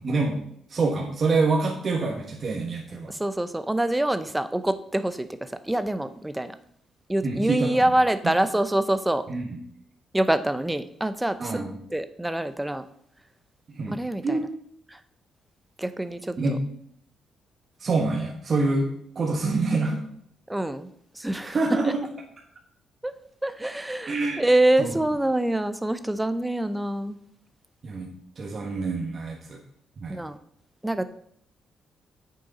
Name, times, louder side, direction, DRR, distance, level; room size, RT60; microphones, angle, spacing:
voice 1, 0.0-0.4 0.7-3.1 7.2-7.9 8.2-8.3 9.3-9.5 11.4-11.7 13.7-14.0 14.2-14.4 16.4-16.6 17.8-20.0 21.5-22.0 24.1-24.4 24.8-24.9 27.8-28.1 28.4-29.6 30.0-30.2, right 3 dB, 40° right, 0 dB, 1.4 m, -26 dB
voice 2, 3.1-6.6 7.1-9.3 10.1-12.8 13.9-14.4 14.9-15.0 15.8-16.6 20.5-20.9 21.1-21.6 23.0-23.2 23.4-27.2 30.1-30.4 30.8-31.0, right 1 dB, 10° right, 11 dB, 0.6 m, -25 dB
8.8 x 6.6 x 4.1 m, 0.67 s
cardioid pair, 115°, 0 cm